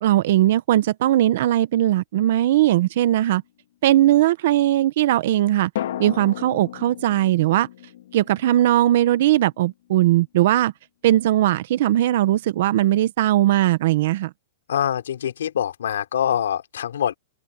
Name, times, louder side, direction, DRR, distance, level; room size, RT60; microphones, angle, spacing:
voice 1, 0.0-3.4 3.8-5.7 6.0-7.7 8.1-10.7 11.0-14.3, right 14 dB, 50° right, 0.9 m, -19 dB
sound 1, 2.2-3.3 5.8-9.7 10.0-10.1, left 12 dB, 60° left, 2.6 m, -36 dB
voice 2, 14.7-17.2, left 9 dB, 90° left, 3.6 m, -24 dB
supercardioid pair, 175°, 0 cm